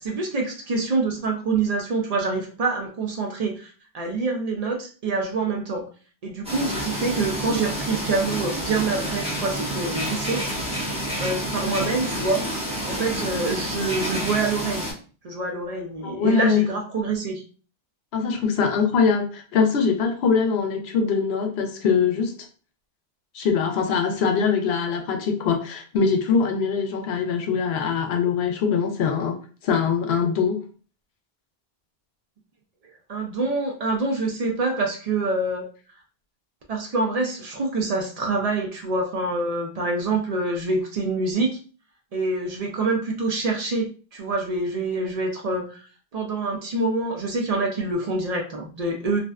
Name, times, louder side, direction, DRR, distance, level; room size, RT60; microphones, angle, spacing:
voice 1, 0.0-5.9 6.2-10.4 11.2-12.4 12.9-14.8 15.2-17.4 33.1-35.7 36.7-41.6 42.1-45.9 46.1-49.2, right 3 dB, 50° right, 1 dB, 0.5 m, -26 dB
sound 1, 6.4-14.9, right 1 dB, 5° right, 0.7 m, -29 dB
voice 2, 16.0-16.6 18.1-22.3 23.3-29.4 29.6-30.6, left 6 dB, 80° left, 4 dB, 0.8 m, -22 dB
2.5 x 2.1 x 2.3 m, 0.38 s
omnidirectional pair, 1.1 m